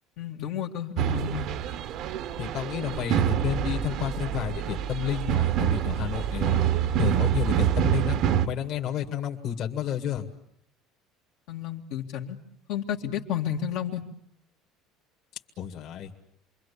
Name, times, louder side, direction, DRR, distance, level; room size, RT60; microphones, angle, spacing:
voice 1, 0.2-1.5 11.5-12.4 12.7-14.0, left 9 dB, 75° left, 0 dB, 2.3 m, -31 dB
sound 1, 1.0-8.5, right 10 dB, 60° right, 1.0 m, -26 dB
voice 2, 2.4-6.7 7.0-10.3 15.6-16.1, left 10 dB, 55° left, 3 dB, 2.1 m, -31 dB
27.5 x 23.0 x 8.5 m, 0.71 s
cardioid pair, 120°, 0 cm